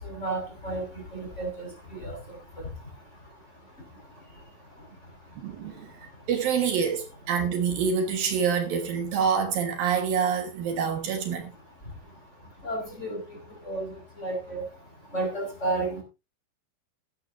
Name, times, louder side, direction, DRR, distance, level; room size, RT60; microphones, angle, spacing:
voice 1, 0.0-2.6 12.6-13.4 13.6-14.6 15.1-16.0, right 2 dB, 15° left, 5.6 m, -32 dB
voice 2, 5.4-5.9 6.3-11.5, right 6 dB, 70° right, 3.1 m, -26 dB
16.5 x 12.0 x 2.6 m
omnidirectional pair, 4.4 m